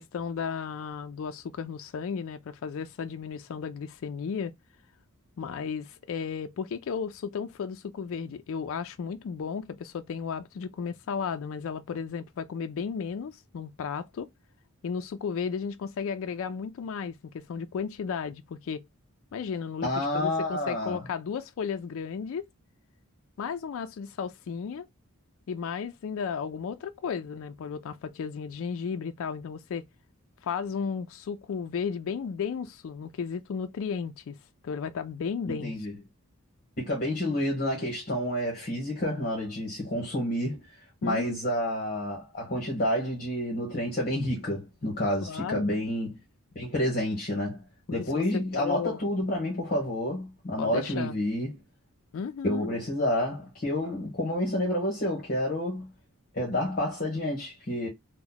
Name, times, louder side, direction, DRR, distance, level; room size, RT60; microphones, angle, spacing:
voice 1, 0.0-4.5 5.4-14.3 14.8-18.8 19.3-22.4 23.4-24.8 25.5-29.9 30.4-34.3 34.6-35.7 41.0-41.4 45.2-45.7 48.1-49.0 50.6-51.2 52.1-52.7, left 6 dB, 65° left, 0.3 m, -34 dB
voice 2, 19.8-21.0 35.5-35.9 36.8-40.6 41.0-46.2 46.5-47.6 47.9-51.5 52.4-55.9 56.3-57.9, left 1 dB, 40° left, 1.1 m, -29 dB
2.9 x 2.1 x 3.8 m
head